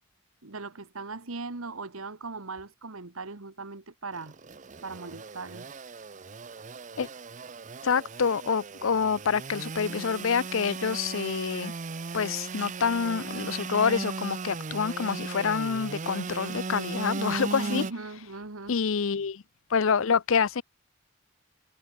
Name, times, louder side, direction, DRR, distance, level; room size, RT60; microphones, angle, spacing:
voice 1, 0.4-4.3 4.8-5.7 17.6-18.7, right 3 dB, 75° right, 1.6 m, -39 dB
Engine / Sawing, 4.1-17.9, right 4 dB, 35° right, 0.6 m, -37 dB
voice 2, 7.8-11.7 12.1-17.8 18.7-19.4 19.7-20.6, left 6 dB, 65° left, 0.6 m, -27 dB
head